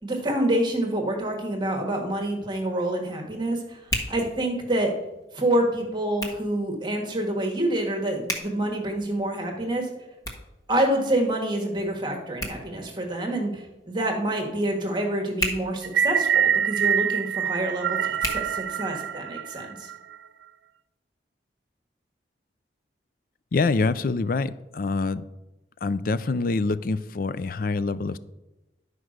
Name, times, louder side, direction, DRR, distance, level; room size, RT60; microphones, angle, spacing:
voice 1, 0.0-3.8 4.1-4.9 5.3-9.9 10.7-19.9, right 1 dB, 25° right, 1 dB, 1.4 m, -27 dB
Hands, 1.6-19.3, equal, 20° left, 1.3 m, -39 dB
sound 1, 15.8-20.2, right 8 dB, 80° right, 0.4 m, -25 dB
voice 2, 23.5-25.3 25.8-28.2, left 3 dB, 50° left, 16 dB, 0.4 m, -25 dB
11.0 x 4.8 x 6.4 m, 0.99 s
head